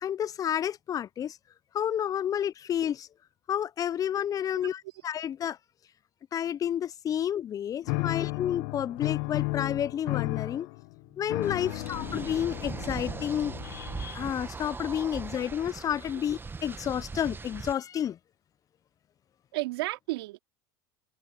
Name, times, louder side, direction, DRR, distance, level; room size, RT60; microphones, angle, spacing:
voice 1, 0.0-1.4 1.7-3.1 3.5-5.6 6.3-10.7 11.2-18.2, left 9 dB, 30° left, 0.4 m, -30 dB
voice 2, 4.5-4.9 8.0-8.1 11.7-11.8 19.5-20.4, right 21 dB, 80° right, 2.4 m, -34 dB
sound 1, 7.9-14.3, left 27 dB, 70° left, 0.7 m, -34 dB
sound 2, 11.4-17.7, right 4 dB, 15° right, 1.1 m, -40 dB
supercardioid pair, 100°, 13 cm